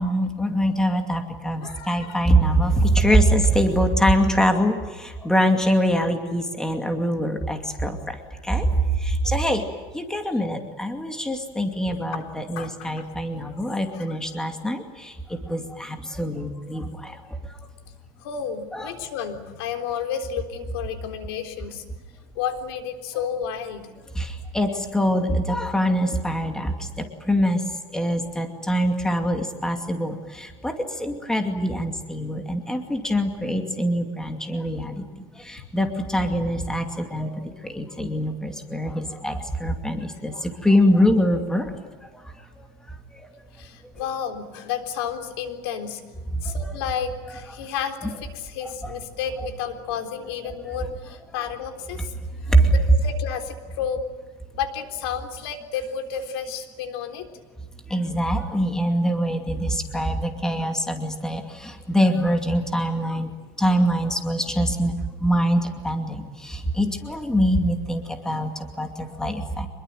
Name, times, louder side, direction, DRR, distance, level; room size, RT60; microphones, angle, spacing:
voice 1, 0.0-8.1 8.4-8.7 9.0-9.6 9.9-17.2 18.7-18.9 24.1-27.6 27.9-35.0 35.4-41.8 46.5-46.6 48.8-49.0 52.5-52.7 57.9-63.3 63.6-64.9 65.2-68.5 68.8-69.7, equal, 5° left, 5 dB, 2.5 m, -24 dB
voice 2, 1.6-2.2 9.2-9.6 12.1-12.3 12.6-13.1 13.9-14.2 16.7-16.8 18.2-21.8 22.4-23.9 38.9-39.3 43.5-46.0 46.4-52.1 52.7-54.0 54.5-57.3 68.3-68.5, left 7 dB, 90° left, 6 dB, 3.7 m, -32 dB
26.0 x 22.0 x 9.2 m, 1.3 s
cardioid pair, 150°, 12 cm